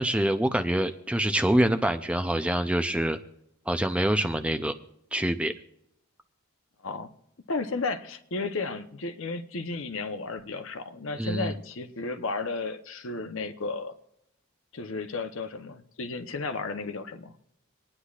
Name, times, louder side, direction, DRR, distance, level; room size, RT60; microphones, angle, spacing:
voice 1, 0.0-3.2 3.7-4.7 5.1-5.5 11.2-11.5, right 1 dB, 5° right, 8 dB, 0.4 m, -25 dB
voice 2, 7.5-13.9 14.7-17.3, left 3 dB, 65° left, 9 dB, 0.9 m, -33 dB
26.5 x 9.9 x 2.4 m, 0.78 s
head